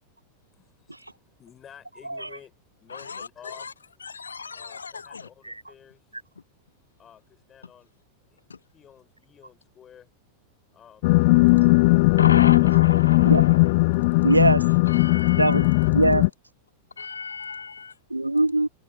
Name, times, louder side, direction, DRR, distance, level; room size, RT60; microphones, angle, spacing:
voice 1, 0.5-2.5 2.8-3.7 4.5-6.1 7.0-7.9 8.3-8.4 8.7-10.1 10.7-11.2 12.4-12.6, left 9 dB, 25° left, 7.5 m, -51 dB
voice 2, 2.9-3.7 4.0-5.3 8.5-8.6 12.2-13.7 14.9-15.9 17.0-17.9, left 5 dB, 75° left, 0.8 m, -33 dB
sound 1, 11.0-16.3, left 24 dB, 50° left, 0.4 m, -18 dB
voice 3, 14.2-14.7 15.4-16.3 18.1-18.7, right 2 dB, 85° right, 0.4 m, -21 dB
figure-of-eight pair, 90°, 0 cm